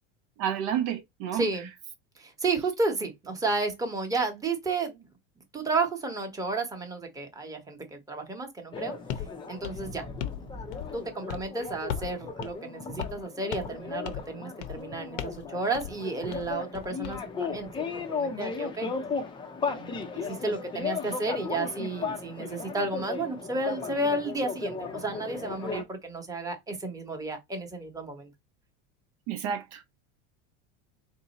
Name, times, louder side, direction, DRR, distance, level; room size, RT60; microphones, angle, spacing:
voice 1, 0.4-1.4 29.3-29.8, right 9 dB, 55° right, 0.6 m, -30 dB
voice 2, 1.3-1.7 2.2-5.1 5.5-9.0 9.5-10.0 10.4-18.9 19.7-28.3, right 3 dB, 10° right, 0.9 m, -32 dB
sound 1, 8.7-25.8, left 5 dB, 15° left, 0.5 m, -36 dB
sound 2, 9.1-9.3 9.6-10.4 10.7-11.0 11.3-11.5 11.9-12.2 12.4-12.5 13.0-13.2 13.5-13.8 14.1-14.3 14.6-14.8 15.2-15.4 15.7-15.9 16.3-17.2, left 10 dB, 75° left, 0.8 m, -37 dB
3.6 x 2.7 x 4.0 m
supercardioid pair, 145°, 36 cm